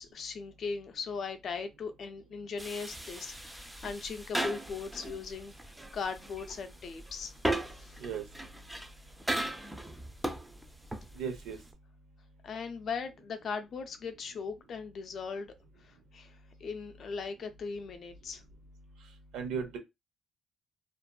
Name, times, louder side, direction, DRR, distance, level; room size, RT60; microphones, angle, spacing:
voice 1, 0.0-5.5 5.9-7.3 7.7-8.0 12.4-15.5 15.8-18.4, left 5 dB, 60° left, 0.5 m, -39 dB
sound 1, 2.6-11.7, right 1 dB, 5° right, 0.4 m, -38 dB
voice 2, 11.2-11.6 19.3-19.8, right 6 dB, 85° right, 0.7 m, -35 dB
2.5 x 2.4 x 2.2 m
cardioid pair, 90°, 0 cm